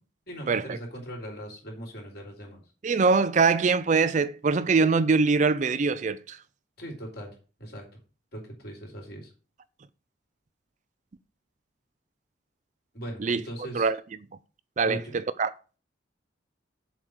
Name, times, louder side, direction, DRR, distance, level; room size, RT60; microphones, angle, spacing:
voice 1, 0.3-2.6 6.8-7.8 8.3-9.3 12.9-13.9 14.8-15.1, right 1 dB, 55° left, 3.4 m, -39 dB
voice 2, 2.8-6.4 13.2-13.4 13.7-14.0 14.8-15.5, right 4 dB, 40° right, 0.4 m, -23 dB
7.2 x 4.7 x 6.7 m
head